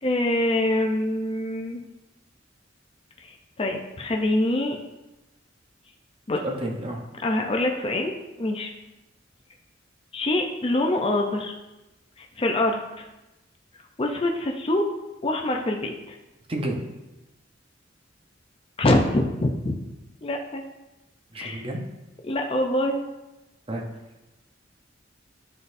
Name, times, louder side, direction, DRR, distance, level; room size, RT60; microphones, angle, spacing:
voice 1, 0.0-1.8 3.2-4.8 6.3-6.4 7.2-8.7 10.1-11.5 12.2-13.0 14.0-14.8 15.2-16.2 18.8-19.8 20.2-20.6 21.4-21.6 22.2-23.0, left 1 dB, 30° left, 2 dB, 0.5 m, -25 dB
voice 2, 6.4-7.0 16.5-16.8 21.3-21.8 23.7-23.8, right 1 dB, 30° right, 1 dB, 0.8 m, -30 dB
11.5 x 4.0 x 2.6 m, 1.0 s
head